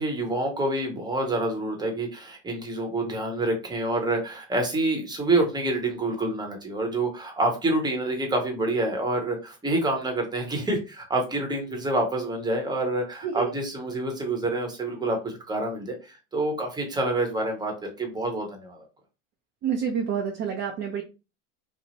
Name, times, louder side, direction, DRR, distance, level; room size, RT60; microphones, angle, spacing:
voice 1, 0.0-18.8, right 2 dB, 10° right, 2 dB, 0.9 m, -27 dB
voice 2, 19.6-21.0, right 7 dB, 30° right, 2 dB, 0.5 m, -28 dB
2.8 x 2.0 x 2.8 m, 0.29 s
supercardioid pair, 105°, 38 cm